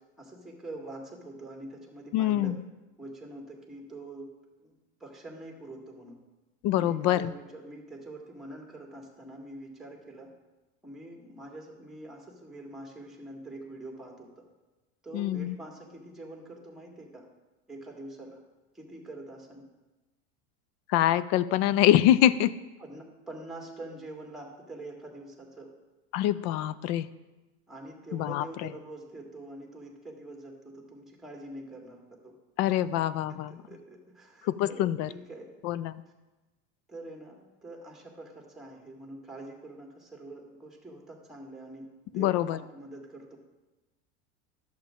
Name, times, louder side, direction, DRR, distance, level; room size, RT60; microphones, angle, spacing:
voice 1, 0.2-2.6 3.0-4.3 4.6-4.7 5.0-6.2 6.7-10.3 10.8-14.5 15.0-17.3 17.7-18.4 18.7-19.7 22.8-25.7 27.7-32.3 32.7-33.0 33.3-35.5 36.9-43.4, right 1 dB, ahead, 0 dB, 1.9 m, -45 dB
voice 2, 2.1-2.6 6.6-7.3 15.1-15.6 20.9-22.5 26.1-27.1 28.1-28.7 32.6-33.6 34.4-35.1 35.6-35.9 42.1-42.6, left 12 dB, 50° left, 17 dB, 0.5 m, -25 dB
11.0 x 7.5 x 3.7 m, 1.1 s
supercardioid pair, 125°, 33 cm